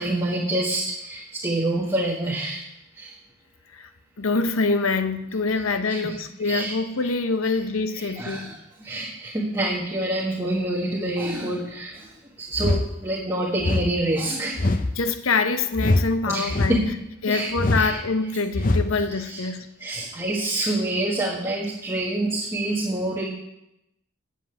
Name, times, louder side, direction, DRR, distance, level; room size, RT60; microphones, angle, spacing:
voice 1, 0.0-2.6 2.9-3.1 5.9-6.7 7.9-12.1 12.4-14.7 16.3-17.0 17.3-18.0 19.1-19.5 19.8-23.2, right 1 dB, 15° right, 1.5 m, -27 dB
voice 2, 4.2-8.5 14.9-16.9 17.2-19.7, left 3 dB, 90° left, 0.8 m, -25 dB
sound 1, 12.5-12.9 13.6-13.9 14.6-14.9 15.8-16.1 16.5-16.9 17.6-17.9 18.5-18.9, left 2 dB, 40° left, 0.6 m, -22 dB
7.9 x 7.7 x 8.8 m
head